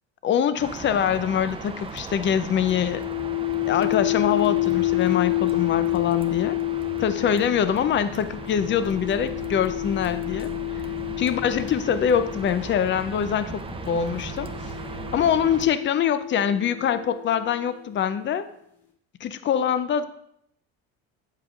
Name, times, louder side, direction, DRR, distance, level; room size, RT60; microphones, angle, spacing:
voice 1, 0.2-3.0 3.7-6.6 7.0-10.5 11.2-14.5 15.1-18.5 19.2-20.1, left 8 dB, 40° left, 12 dB, 0.6 m, -24 dB
sound 1, 0.6-15.7, right 3 dB, 15° right, 0.7 m, -37 dB
sound 2, 2.6-13.0 13.9-17.6, left 18 dB, 85° left, 2.5 m, -29 dB
7.9 x 7.4 x 2.5 m, 0.74 s
supercardioid pair, 85°, 31 cm